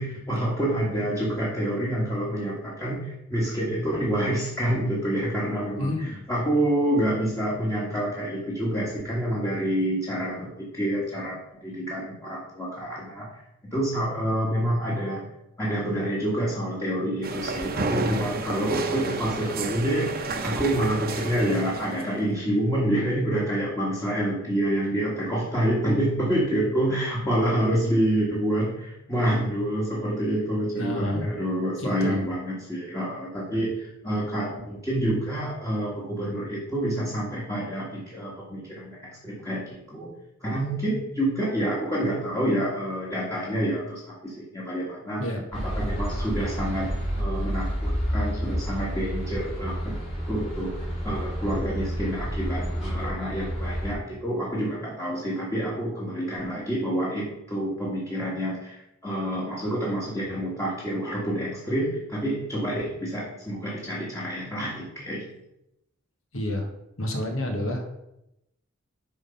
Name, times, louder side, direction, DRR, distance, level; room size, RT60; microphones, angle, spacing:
voice 1, 0.0-15.2 15.6-40.1 40.4-46.9 47.2-49.9 50.3-50.7 51.0-65.2, right 1 dB, 15° left, -5 dB, 1.7 m, -27 dB
voice 2, 5.8-6.2 30.8-31.3 31.8-32.2 45.2-45.4 66.3-66.7 67.0-67.9, left 1 dB, 75° left, 2 dB, 1.7 m, -29 dB
sound 1, 17.2-22.2, right 3 dB, 45° right, 0.9 m, -31 dB
sound 2, 45.5-53.9, equal, 30° left, 2.8 m, -30 dB
9.4 x 3.8 x 5.7 m, 0.86 s
head